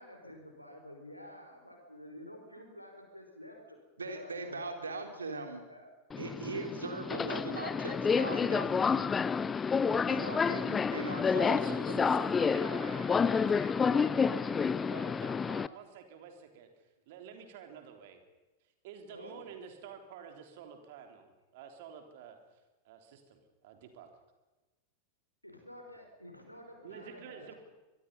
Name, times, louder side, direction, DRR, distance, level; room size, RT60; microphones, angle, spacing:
voice 1, 0.0-3.8 4.0-4.9 5.3-5.9 9.9-10.9 12.9-13.9 14.7-15.0 19.1-19.5 25.4-27.6, left 1 dB, 90° left, 2 dB, 5.5 m, -51 dB
voice 2, 4.0-5.6 6.2-9.1 10.1-11.6 11.9-12.0, right 3 dB, 75° right, 5 dB, 3.5 m, -40 dB
Subway metro underground, 6.1-15.7, left 5 dB, 15° left, 0.6 m, -29 dB
voice 3, 11.6-13.7 14.0-16.7 17.1-18.2 18.8-22.4 22.9-24.1 26.8-27.5, right 7 dB, 50° right, 5 dB, 3.7 m, -49 dB
24.5 x 21.5 x 5.5 m, 1.1 s
figure-of-eight pair, 90°, 0 cm